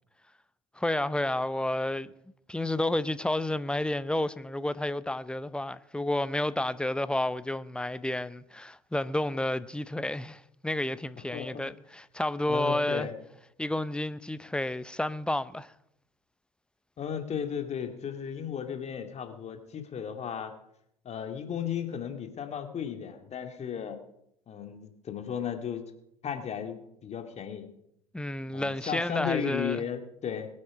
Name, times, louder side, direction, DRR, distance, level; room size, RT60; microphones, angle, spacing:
voice 1, 0.8-2.1 2.5-13.1 13.6-15.7 28.1-29.8, left 1 dB, 5° left, 0.7 m, -30 dB
voice 2, 11.3-11.7 12.5-13.2 17.0-20.5 21.0-24.0 24.5-25.9 26.2-27.7 28.5-30.5, left 8 dB, 35° left, 2.2 m, -35 dB
22.5 x 8.6 x 4.9 m
hypercardioid pair, 70°, 19 cm